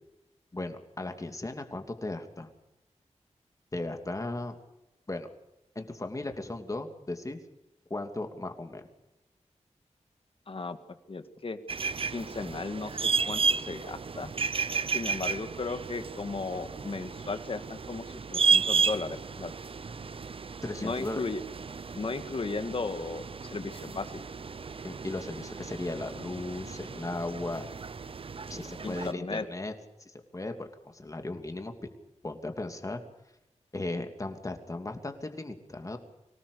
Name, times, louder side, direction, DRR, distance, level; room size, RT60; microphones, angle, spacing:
voice 1, 0.5-2.5 3.7-4.6 5.1-5.3 5.7-7.4 7.9-8.8 20.6-21.3 24.8-27.6 28.5-29.7 30.0-31.7 32.2-33.0 33.7-36.0, left 2 dB, 25° left, 5 dB, 2.8 m, -36 dB
voice 2, 10.5-10.8 11.1-11.6 12.1-14.3 14.9-19.5 20.8-21.4 21.9-23.2 23.5-24.2 28.8-29.5, left 3 dB, 50° left, 9 dB, 1.9 m, -35 dB
sound 1, 11.7-29.1, right 5 dB, 50° right, 0.7 m, -33 dB
24.5 x 18.5 x 6.9 m, 0.92 s
wide cardioid pair, 120°, 12 cm